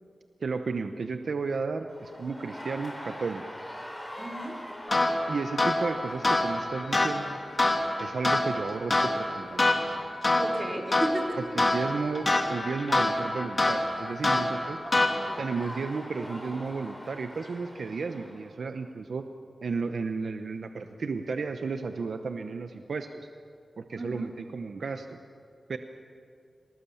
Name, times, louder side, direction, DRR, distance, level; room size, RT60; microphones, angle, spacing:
voice 1, 0.4-3.4 5.3-7.4 8.0-9.7 11.5-14.8 15.4-19.3 19.6-23.3 23.8-25.1 25.7-25.8, right 4 dB, 80° right, 7 dB, 0.9 m, -33 dB
sound 1, 1.9-18.5, equal, 10° left, 4.2 m, -46 dB
voice 2, 4.2-4.6 10.4-11.4 14.8-15.1 24.0-24.3, right 1 dB, 35° right, 0 dB, 3.8 m, -33 dB
sound 2, 4.9-15.5, left 2 dB, 40° left, 3.0 m, -27 dB
26.5 x 18.5 x 7.1 m, 2.5 s
wide cardioid pair, 70°, 0 cm